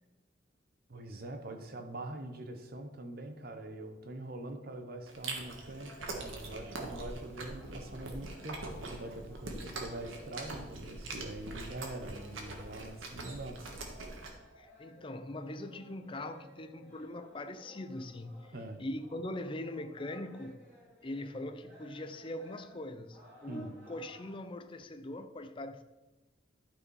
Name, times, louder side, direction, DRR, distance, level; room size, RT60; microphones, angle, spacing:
voice 1, 0.9-13.6 18.5-18.8 23.5-23.7, right 2 dB, 50° right, 1.0 m, -44 dB
Chewing mastication, 5.1-14.3, right 2 dB, 85° right, 1.6 m, -43 dB
sound 1, 5.4-24.4, equal, 10° right, 3.1 m, -58 dB
voice 2, 14.6-18.5 18.8-20.6 21.0-25.8, left 1 dB, 25° left, 0.5 m, -41 dB
12.0 x 5.1 x 4.8 m
head